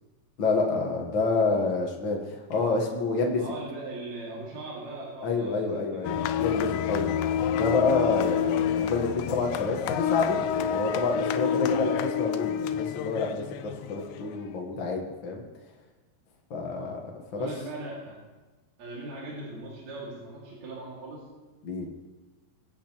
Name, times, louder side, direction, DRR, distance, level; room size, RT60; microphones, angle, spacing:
voice 1, 0.4-3.4 5.2-7.1 7.5-15.5 16.5-17.5 21.6-21.9, left 3 dB, 55° left, 0 dB, 1.5 m, -28 dB
voice 2, 3.4-6.7 8.1-8.8 11.4-11.7 16.7-17.0 17.3-18.2 18.8-21.3, right 2 dB, 60° right, -6 dB, 3.6 m, -40 dB
sound 1, 6.0-14.4, left 8 dB, 90° left, 2.3 m, -28 dB
23.0 x 8.7 x 3.0 m, 1.2 s
omnidirectional pair, 3.8 m